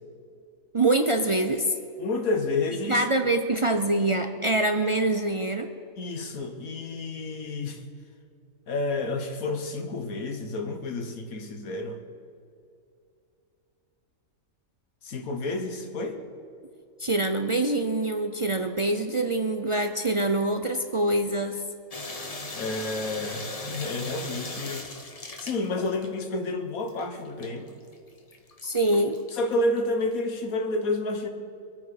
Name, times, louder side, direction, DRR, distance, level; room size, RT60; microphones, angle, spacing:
voice 1, 0.7-1.7 2.9-5.7 17.0-21.6 28.6-29.2, right 2 dB, 50° right, 6 dB, 0.3 m, -25 dB
voice 2, 2.0-3.0 6.0-7.8 8.7-12.0 15.0-16.2 22.5-24.9 25.4-27.7 29.3-31.3, left 2 dB, 90° left, 5 dB, 1.7 m, -30 dB
sound 1, 21.9-26.4 26.9-29.9, left 2 dB, 30° left, 1.1 m, -38 dB
24.0 x 9.4 x 5.1 m, 2.6 s
omnidirectional pair, 1.4 m